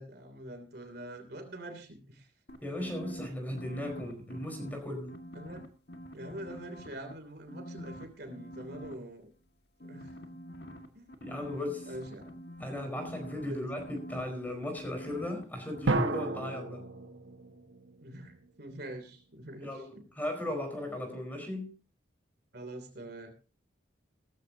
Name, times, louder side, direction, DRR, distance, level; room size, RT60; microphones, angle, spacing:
voice 1, 0.0-2.3 5.3-5.7 6.1-9.3 9.8-10.3 10.9-11.1 11.8-12.4 13.4-13.7 18.0-20.1 22.5-23.3, right 1 dB, 55° right, 6 dB, 3.0 m, -45 dB
sound 1, 2.5-4.8 5.1-7.1 7.5-8.9 9.8-15.4 15.7-15.9, equal, 55° left, 1.9 m, -45 dB
voice 2, 2.6-5.2 11.2-11.9 12.6-16.8 19.6-21.8, left 1 dB, 10° left, 4 dB, 4.5 m, -37 dB
sound 2, 15.8-18.6, right 2 dB, 80° right, 1.5 m, -33 dB
17.5 x 14.0 x 2.8 m, 0.33 s
head